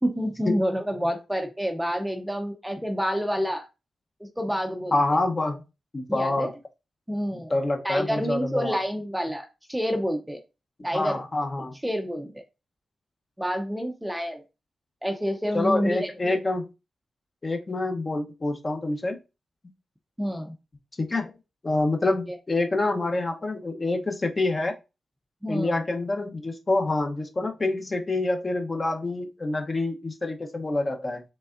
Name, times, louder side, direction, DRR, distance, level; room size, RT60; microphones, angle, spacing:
voice 1, 0.0-3.7 4.2-5.0 6.1-6.5 7.1-7.5 7.8-10.4 10.8-11.2 11.8-12.4 13.4-14.4 15.0-16.4 20.2-20.5 22.3-22.4 25.4-25.8, equal, 5° right, 0.6 m, -28 dB
voice 2, 4.9-5.6 5.9-6.5 7.5-8.8 10.9-11.8 15.5-16.7 17.4-19.2 21.1-21.3 21.6-24.7 25.5-31.2, left 2 dB, 30° left, 0.7 m, -26 dB
5.4 x 3.4 x 2.4 m
wide cardioid pair, 120°, 0 cm